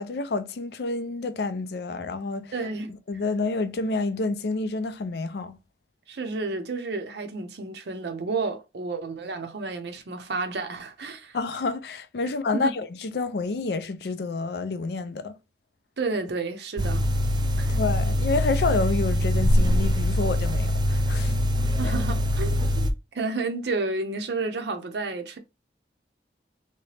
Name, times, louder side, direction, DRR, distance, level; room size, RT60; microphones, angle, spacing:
voice 1, 0.0-2.5 3.1-5.6 11.3-15.3 17.4-21.3 21.8-21.9, left 3 dB, 65° left, 0.4 m, -29 dB
voice 2, 2.5-2.9 6.1-11.4 12.5-12.7 16.0-17.1 17.6-17.8 21.8-25.4, right 3 dB, 70° right, 0.6 m, -31 dB
sound 1, 16.8-22.9, left 1 dB, 25° right, 0.3 m, -23 dB
3.1 x 2.8 x 3.2 m
head